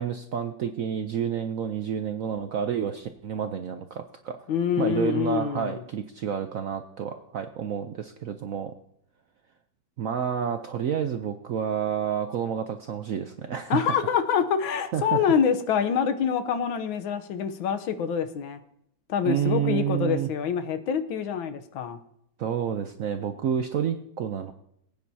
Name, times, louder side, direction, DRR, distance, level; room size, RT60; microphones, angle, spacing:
voice 1, 0.0-4.5 4.8-8.7 10.0-14.0 14.9-15.2 19.2-20.3 22.4-24.5, right 8 dB, 70° right, 7 dB, 0.8 m, -29 dB
voice 2, 4.5-5.8 13.7-18.6 19.1-22.0, left 7 dB, 85° left, 9 dB, 1.6 m, -26 dB
22.5 x 9.3 x 2.7 m, 0.74 s
omnidirectional pair, 2.1 m